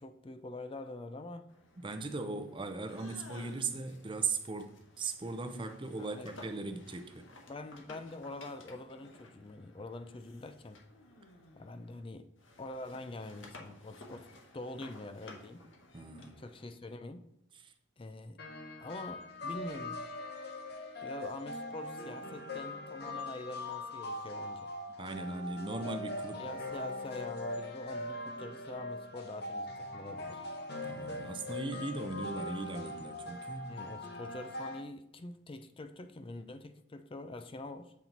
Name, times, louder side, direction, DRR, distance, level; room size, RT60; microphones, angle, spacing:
voice 1, 0.0-1.5 6.0-6.4 7.5-10.8 11.6-12.3 12.6-14.3 14.5-15.6 16.4-17.3 18.0-18.4 18.8-20.0 21.0-24.7 26.4-30.5 33.7-37.9, left 2 dB, 25° left, 0.4 m, -45 dB
sound 1, 1.5-12.1 12.4-16.7, left 2 dB, 70° left, 1.2 m, -56 dB
voice 2, 1.8-7.3 15.9-16.4 17.6-17.7 25.0-26.5 30.9-33.7, right 3 dB, 25° right, 0.6 m, -38 dB
sound 2, 2.9-3.9 5.2-5.9 7.1-7.9 8.4-9.4 10.1-11.9, left 3 dB, 85° left, 0.9 m, -58 dB
sound 3, 18.4-34.8, left 1 dB, 55° left, 0.9 m, -41 dB
7.3 x 4.4 x 3.9 m
head